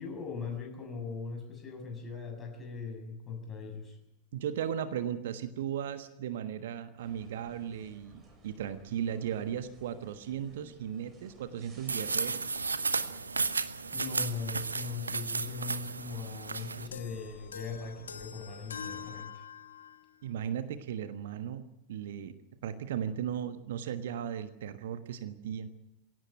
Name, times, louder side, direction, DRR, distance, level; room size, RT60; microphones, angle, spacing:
voice 1, 0.0-4.0 13.9-19.4, left 4 dB, 20° left, 2 dB, 7.5 m, -40 dB
voice 2, 4.3-12.6 20.2-22.4 22.6-25.7, right 9 dB, 55° right, 11 dB, 1.3 m, -36 dB
sound 1, 7.0-19.2, right 2 dB, 25° right, 7.0 m, -57 dB
sound 2, 11.9-16.9, right 4 dB, 75° right, 1.0 m, -33 dB
sound 3, 16.9-20.1, left 6 dB, 70° left, 1.4 m, -44 dB
22.0 x 17.0 x 9.1 m, 0.94 s
figure-of-eight pair, 90°, 0 cm